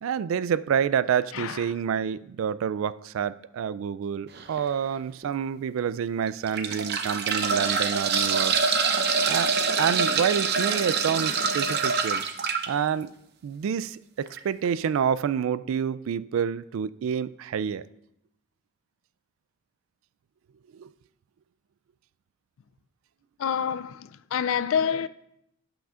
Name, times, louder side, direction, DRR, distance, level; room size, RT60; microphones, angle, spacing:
voice 1, 0.0-8.5 9.3-12.2 12.7-13.1 13.4-17.9 20.7-20.9, right 7 dB, 70° right, 0.3 m, -28 dB
voice 2, 1.3-1.6 23.4-25.1, left 7 dB, 70° left, 0.4 m, -27 dB
sound 1, 4.3-4.6 5.2-5.3 6.3-12.7 14.3-14.4 14.6-14.7, right 5 dB, 50° right, 0.7 m, -25 dB
17.0 x 5.9 x 2.4 m
head